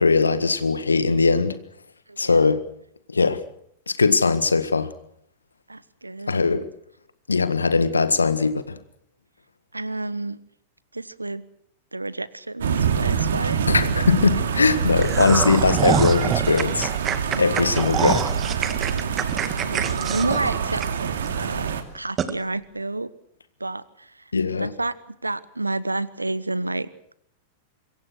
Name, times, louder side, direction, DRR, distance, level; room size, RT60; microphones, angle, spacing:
voice 1, 0.0-1.6 2.2-2.6 3.1-3.4 3.9-4.9 6.3-6.7 7.3-8.8 13.7-16.9 17.4-18.7 24.3-24.7, left 4 dB, 80° left, 13 dB, 1.6 m, -20 dB
voice 2, 2.1-2.6 5.7-6.4 9.7-10.4 10.9-11.4 11.9-13.6 15.9-16.0 17.3-17.7 19.6-23.1 23.6-24.9 25.2-26.9, right 2 dB, 85° right, 19 dB, 1.0 m, -30 dB
sound 1, 12.6-21.8, right 7 dB, 65° right, 2.6 m, -25 dB
sound 2, 15.0-21.3 21.6-21.7 22.2-22.3, right 8 dB, 25° right, 2.1 m, -26 dB
26.0 x 23.0 x 6.4 m, 0.70 s
figure-of-eight pair, 95°, 0 cm